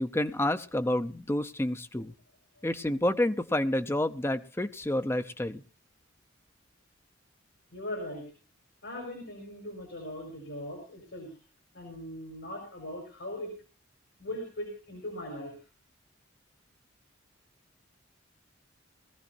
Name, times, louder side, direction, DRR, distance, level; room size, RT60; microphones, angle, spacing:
voice 1, 0.0-2.1 2.6-5.6, left 1 dB, 10° left, 8 dB, 0.6 m, -29 dB
voice 2, 7.7-8.2 8.8-11.4 11.7-13.5 14.2-15.6, left 1 dB, 70° left, 2 dB, 4.4 m, -39 dB
20.5 x 14.5 x 2.6 m, 0.35 s
head